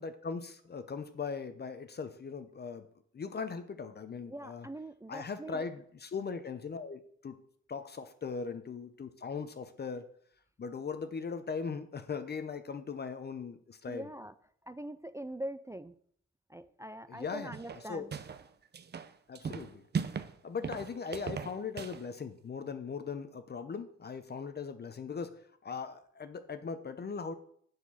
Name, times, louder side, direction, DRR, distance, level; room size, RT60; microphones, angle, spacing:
voice 1, 0.0-2.9 3.1-4.7 5.1-7.4 7.7-10.1 10.6-14.1 17.1-17.6 17.9-18.1 19.3-19.9 20.4-27.3, left 5 dB, 35° left, 9 dB, 0.8 m, -39 dB
voice 2, 4.2-5.7 13.9-14.3 14.6-15.9 16.5-18.1, right 1 dB, 10° right, 12 dB, 0.3 m, -43 dB
sound 1, 17.5-18.5 18.7-20.3 20.6-22.0, right 6 dB, 35° right, 0.7 m, -38 dB
7.0 x 6.6 x 5.8 m, 0.63 s
cardioid pair, 90°, 30 cm